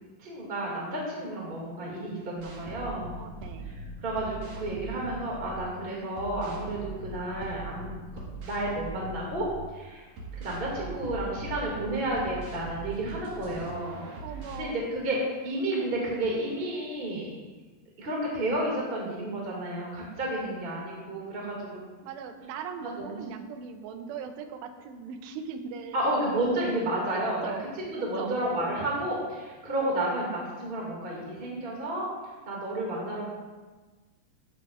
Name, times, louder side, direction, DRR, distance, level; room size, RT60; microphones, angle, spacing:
voice 1, 0.2-3.2 3.6-3.7 4.0-10.1 10.3-14.0 14.5-17.3 18.0-21.8 22.8-23.2 25.9-27.4 27.8-32.1 32.4-33.3, right 1 dB, 25° right, -4 dB, 1.2 m, -31 dB
sound 1, 2.4-5.7 6.1-9.7 10.1-14.6, right 2 dB, 55° right, 2.8 m, -41 dB
voice 2, 3.1-3.7 14.2-14.8 22.0-26.1 27.1-27.7 28.1-28.4, right 6 dB, 85° right, 6 dB, 2.9 m, -39 dB
14.5 x 7.6 x 2.5 m, 1.3 s
omnidirectional pair, 4.8 m